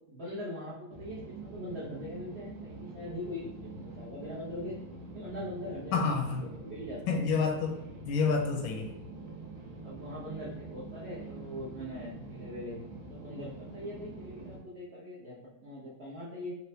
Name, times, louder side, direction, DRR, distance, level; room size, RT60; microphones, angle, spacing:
voice 1, 0.1-4.8 5.1-6.0 6.3-7.2 8.9-9.0 9.8-16.6, left 1 dB, 85° right, -8 dB, 0.5 m, -41 dB
sound 1, 0.9-14.6, right 2 dB, 70° right, 1.0 m, -45 dB
voice 2, 5.9-6.5 7.1-8.9, left 4 dB, 80° left, 2 dB, 1.3 m, -29 dB
4.3 x 2.0 x 2.7 m, 0.86 s
omnidirectional pair, 2.2 m